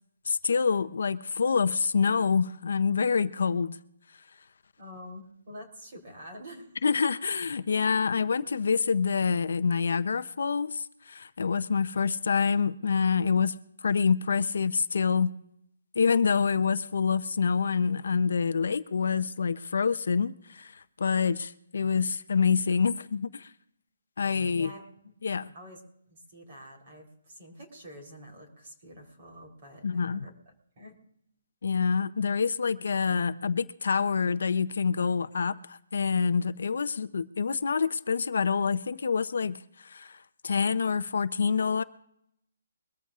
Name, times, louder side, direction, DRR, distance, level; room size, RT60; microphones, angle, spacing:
voice 1, 0.3-3.8 6.8-13.5 13.8-15.3 16.0-23.5 24.2-24.7 25.2-25.5 29.8-30.3 31.6-39.6 39.8-40.2 40.4-41.8, left 5 dB, 60° left, 12 dB, 0.6 m, -26 dB
voice 2, 4.8-6.8 24.5-25.1 25.5-25.8 26.1-30.3 30.8-31.0, equal, 30° right, 0 dB, 3.6 m, -47 dB
23.0 x 14.0 x 2.4 m, 0.73 s
hypercardioid pair, 175°, 0 cm